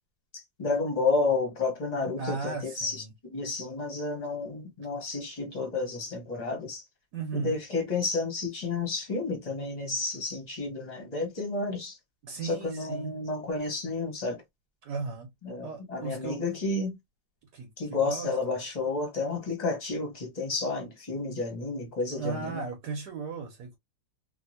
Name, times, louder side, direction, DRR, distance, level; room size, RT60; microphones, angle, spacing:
voice 1, 0.3-3.0 3.3-6.8 7.3-12.0 12.4-14.4 15.4-17.0 17.8-22.6, left 3 dB, 30° left, 0.9 m, -31 dB
voice 2, 2.2-3.1 7.1-7.5 12.2-13.2 14.8-15.3 15.6-16.4 17.5-18.6 22.1-23.8, right 4 dB, 65° right, 1.4 m, -36 dB
2.9 x 2.8 x 2.7 m
omnidirectional pair, 2.1 m